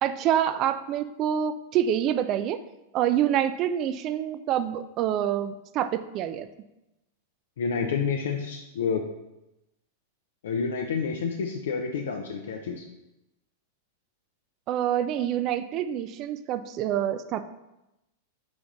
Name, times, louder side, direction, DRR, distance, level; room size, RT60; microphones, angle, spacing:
voice 1, 0.0-2.6 2.9-6.5 14.7-17.4, right 10 dB, 40° right, 12 dB, 0.3 m, -26 dB
voice 2, 7.6-9.0 10.4-12.8, left 5 dB, 80° left, 2 dB, 0.4 m, -29 dB
4.0 x 3.3 x 3.7 m, 0.93 s
hypercardioid pair, 115°, 0 cm